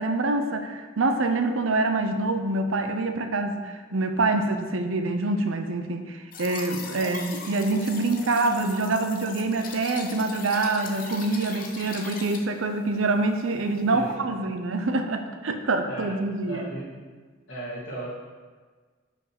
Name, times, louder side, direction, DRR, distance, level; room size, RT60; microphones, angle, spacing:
voice 1, 0.0-16.6, right 2 dB, 80° right, 7 dB, 0.6 m, -26 dB
sound 1, 6.3-12.4, left 5 dB, 40° left, 0.7 m, -39 dB
voice 2, 15.9-16.2 16.4-16.9 17.5-18.1, right 2 dB, 65° left, -12 dB, 2.0 m, -36 dB
5.3 x 5.2 x 5.8 m, 1.4 s
head